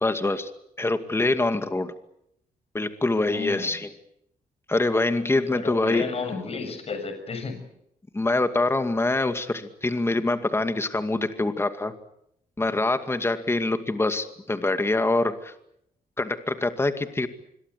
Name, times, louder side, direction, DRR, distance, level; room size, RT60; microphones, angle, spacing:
voice 1, 0.0-0.5 0.8-1.9 2.7-3.9 4.7-6.1 8.1-11.9 12.6-15.5 16.2-17.3, left 2 dB, 15° left, 9 dB, 2.2 m, -25 dB
voice 2, 3.3-3.8 5.5-7.6, left 4 dB, 45° left, 8 dB, 6.5 m, -32 dB
26.0 x 22.5 x 8.3 m, 0.76 s
cardioid pair, 105°, 15 cm